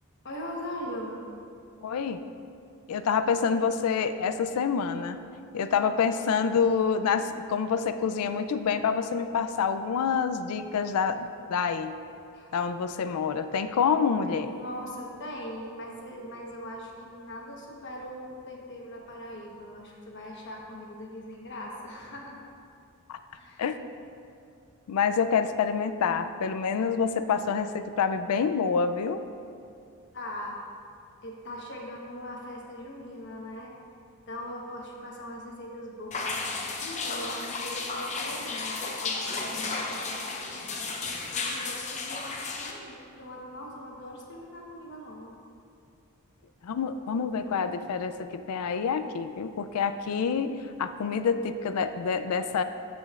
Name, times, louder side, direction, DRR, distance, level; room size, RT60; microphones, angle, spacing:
voice 1, 0.2-1.2 5.7-6.0 12.3-12.5 14.3-22.4 23.3-23.6 30.1-30.6 31.2-33.7 34.3-45.4, left 1 dB, 50° left, -1 dB, 1.1 m, -41 dB
voice 2, 1.8-2.2 2.9-5.2 5.5-12.0 12.5-14.5 23.1-23.2 23.6-23.8 24.9-29.2 46.6-52.6, left 6 dB, 80° left, 10 dB, 0.4 m, -27 dB
sound 1, 36.1-42.7, left 3 dB, 30° left, 0.6 m, -33 dB
14.0 x 5.2 x 2.4 m, 2.5 s
head